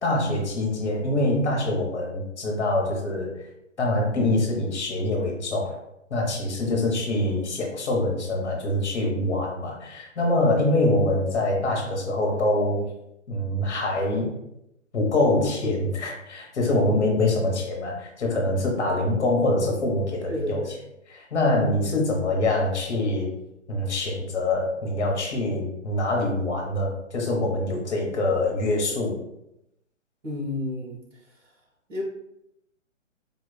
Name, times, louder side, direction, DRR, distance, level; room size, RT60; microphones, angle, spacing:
voice 1, 0.0-3.3 3.8-5.8 6.1-12.9 13.3-14.3 14.9-20.6 21.1-23.3 23.7-29.1, left 2 dB, 60° left, 0 dB, 1.0 m, -24 dB
voice 2, 20.3-20.7 30.2-31.0 31.9-32.0, left 1 dB, 75° right, -2 dB, 1.3 m, -30 dB
3.8 x 2.3 x 2.2 m, 0.83 s
figure-of-eight pair, 130°, 38 cm